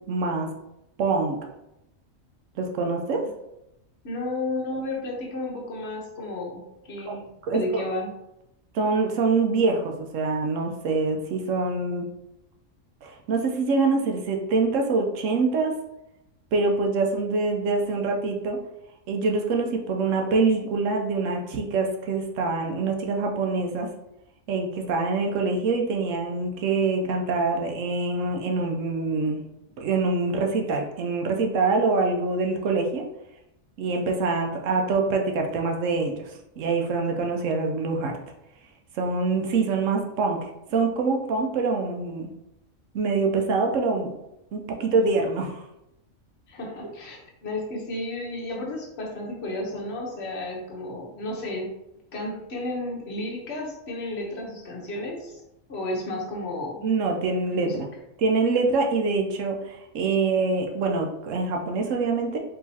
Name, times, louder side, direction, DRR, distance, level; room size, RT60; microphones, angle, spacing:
voice 1, 0.1-0.5 1.0-1.4 2.6-3.2 7.1-7.2 7.5-7.8 8.7-12.1 13.0-15.7 16.5-18.6 19.1-23.9 24.5-29.4 29.8-33.0 33.8-36.2 36.6-38.2 39.0-40.4 40.7-42.3 42.9-44.1 44.5-45.6 56.8-57.9 58.2-62.4, right 3 dB, 70° right, 2 dB, 0.9 m, -25 dB
voice 2, 4.0-8.1 46.5-51.7 52.1-55.4 55.7-56.8 57.5-57.8, left 1 dB, 55° left, -1 dB, 1.1 m, -32 dB
4.5 x 3.0 x 2.8 m, 0.87 s
omnidirectional pair, 1.4 m